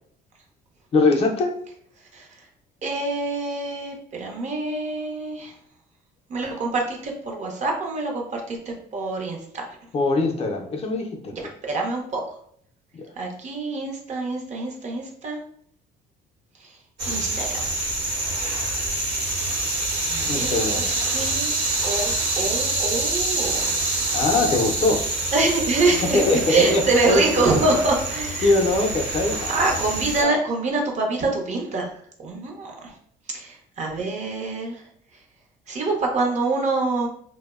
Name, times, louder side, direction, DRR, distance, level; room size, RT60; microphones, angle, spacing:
voice 1, 0.9-1.5 9.9-11.5 12.9-13.0 20.3-21.1 24.1-25.0 26.0-27.4 28.4-29.8 30.2-30.3, left 3 dB, 35° left, 2 dB, 0.4 m, -22 dB
voice 2, 2.8-5.5 6.3-9.6 11.7-12.2 13.2-15.4 17.1-17.5 20.1-21.5 21.8-23.7 25.3-26.2 26.5-28.5 29.5-31.9 32.2-32.9 33.3-34.8 35.7-37.1, right 3 dB, 45° right, 1 dB, 0.6 m, -25 dB
sound 1, 17.0-30.2, right 2 dB, 80° right, 0.9 m, -26 dB
2.6 x 2.0 x 2.3 m, 0.63 s
cardioid pair, 110°, 17 cm